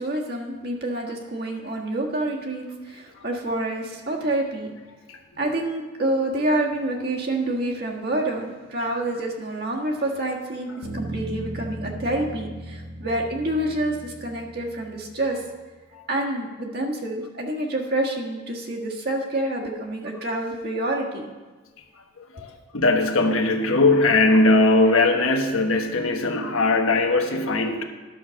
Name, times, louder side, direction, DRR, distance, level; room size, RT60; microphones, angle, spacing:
voice 1, 0.0-4.7 5.4-15.4 16.1-21.3, right 1 dB, 50° right, -1 dB, 1.6 m, -27 dB
Bass guitar, 10.8-15.3, right 1 dB, 85° right, 2.6 m, -37 dB
voice 2, 22.2-27.8, left 2 dB, 85° left, 4 dB, 1.2 m, -20 dB
11.5 x 6.4 x 6.3 m, 1.3 s
head